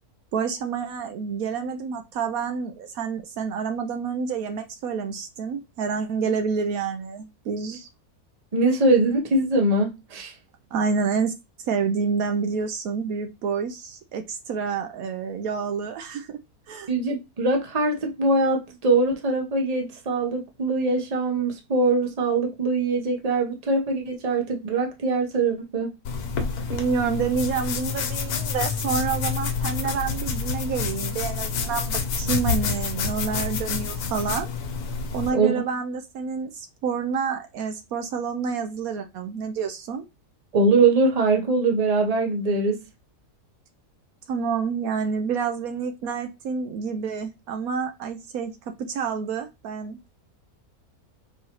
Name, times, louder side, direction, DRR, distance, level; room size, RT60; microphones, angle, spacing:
voice 1, 0.3-7.9 10.7-11.3 11.7-16.4 16.7-16.9 26.4-34.5 35.1-40.0 44.3-50.0, right 5 dB, 75° right, 1.0 m, -28 dB
voice 2, 8.5-10.3 16.9-25.9 35.3-35.6 40.5-42.8, right 3 dB, 30° right, 0.9 m, -22 dB
sound 1, 26.1-35.3, left 5 dB, 80° left, 1.3 m, -28 dB
4.5 x 3.1 x 2.9 m
omnidirectional pair, 1.6 m